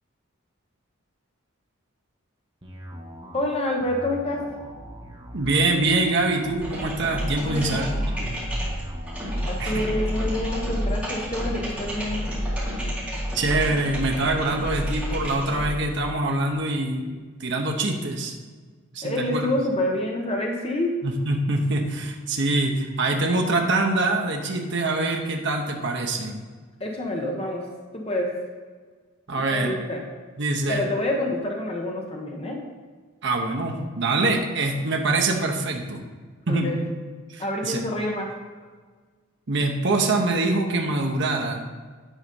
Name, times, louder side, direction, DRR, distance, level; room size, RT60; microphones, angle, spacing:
sound 1, 2.6-12.2, equal, 25° right, 1.1 m, -42 dB
voice 1, 3.3-4.5 7.4-8.1 9.4-12.2 19.0-21.0 26.8-27.7 27.9-28.3 29.5-30.0 30.7-32.6 36.5-36.8 37.4-38.3, left 1 dB, 30° left, 0 dB, 0.9 m, -27 dB
voice 2, 5.3-8.4 9.6-9.9 13.3-17.1 17.4-18.3 18.9-19.5 21.0-26.4 29.3-29.8 30.4-30.9 33.2-36.0 36.5-36.7 37.3-37.8 39.5-41.6, right 2 dB, 55° right, 2 dB, 0.9 m, -24 dB
sound 2, 6.5-15.8, equal, 5° right, 2.6 m, -29 dB
10.0 x 4.1 x 5.3 m, 1.5 s
head